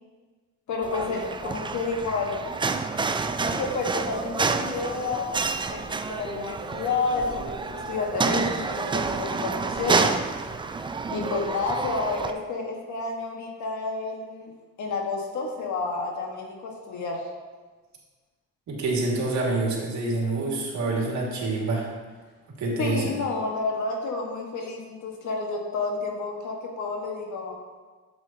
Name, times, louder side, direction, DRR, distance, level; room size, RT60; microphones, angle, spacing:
voice 1, 0.7-2.6 3.4-5.3 5.7-10.2 11.1-14.5 14.8-17.3 22.8-27.6, left 3 dB, 70° left, 0 dB, 1.5 m, -30 dB
sound 1, 0.8-12.3, right 4 dB, 15° right, 0.3 m, -29 dB
voice 2, 18.7-21.9 22.6-23.1, right 2 dB, 70° right, -2 dB, 2.0 m, -26 dB
8.0 x 7.7 x 2.8 m, 1.4 s
cardioid pair, 90°, 30 cm